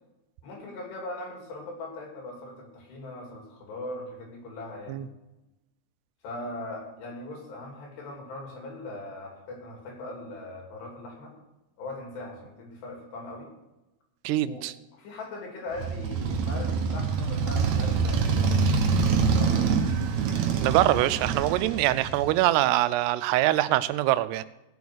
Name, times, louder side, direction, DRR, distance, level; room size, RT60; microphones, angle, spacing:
voice 1, 0.4-5.1 6.2-11.3 11.8-13.5 14.4-14.7 14.9-19.9, left 2 dB, 80° left, 0 dB, 5.1 m, -40 dB
voice 2, 14.2-14.7 20.6-24.4, right 15 dB, 85° right, 14 dB, 2.6 m, -24 dB
Motorcycle, 15.7-22.4, right 5 dB, 65° right, 1.8 m, -25 dB
16.5 x 7.1 x 6.3 m, 1.0 s
omnidirectional pair, 4.8 m